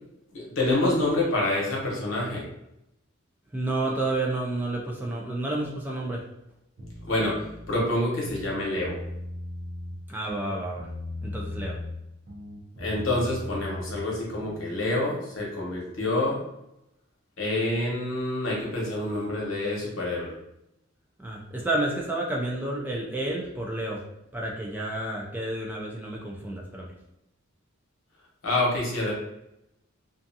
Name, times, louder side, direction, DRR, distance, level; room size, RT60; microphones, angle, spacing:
voice 1, 0.3-2.4 7.1-7.4 7.7-9.0 12.8-16.4 17.4-20.3 28.4-29.1, left 2 dB, 70° left, -3 dB, 0.9 m, -27 dB
voice 2, 3.5-6.2 10.1-10.9 11.2-11.8 17.7-17.9 21.2-24.0 24.3-26.9, right 2 dB, 10° right, -2 dB, 0.3 m, -30 dB
sound 1, 6.8-7.8 8.2-10.0 10.3-12.0 12.3-14.7, left 1 dB, 50° right, 0.7 m, -38 dB
2.5 x 2.3 x 2.6 m, 0.85 s
head